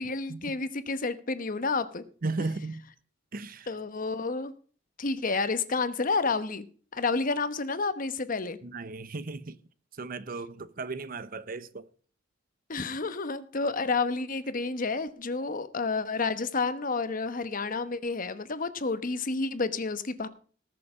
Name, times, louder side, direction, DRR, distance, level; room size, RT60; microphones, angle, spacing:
voice 1, 0.0-2.0 3.7-4.5 5.0-6.6 6.9-8.6 12.7-20.3, left 4 dB, 45° left, 1.1 m, -30 dB
voice 2, 2.2-2.8 3.3-3.7 8.6-9.6 10.0-11.9, right 3 dB, 50° right, 0.8 m, -35 dB
19.0 x 6.8 x 4.9 m
head